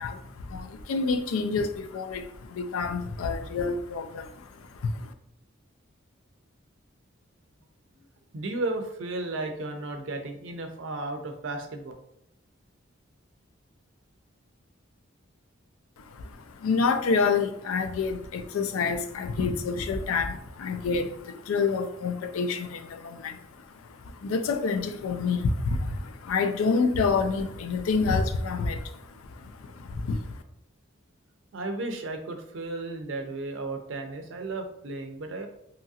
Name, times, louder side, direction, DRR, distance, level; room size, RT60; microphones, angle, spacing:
voice 1, 0.0-5.1 16.0-30.4, left 4 dB, 90° left, 8 dB, 0.4 m, -28 dB
voice 2, 8.3-11.9 31.5-35.5, right 2 dB, 65° right, 5 dB, 0.5 m, -34 dB
2.8 x 2.4 x 2.7 m, 0.76 s
head